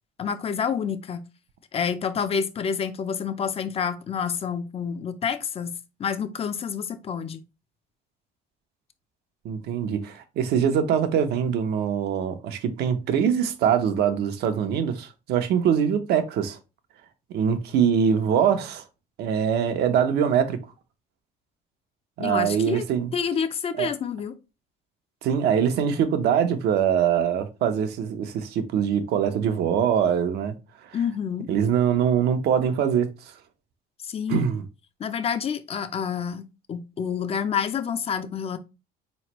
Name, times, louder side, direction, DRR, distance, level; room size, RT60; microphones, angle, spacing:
voice 1, 0.2-1.2 1.7-7.4 22.2-22.8 23.1-24.3 30.9-31.5 34.0-34.5 35.0-38.6, left 7 dB, 35° left, 0.5 m, -28 dB
voice 2, 9.4-16.6 17.3-18.8 19.2-20.6 22.2-23.1 23.8-23.9 25.2-30.5 30.8-31.0 31.5-33.3 34.3-34.6, right 8 dB, 75° right, 0.7 m, -23 dB
4.2 x 3.1 x 3.0 m
cardioid pair, 110°, 17 cm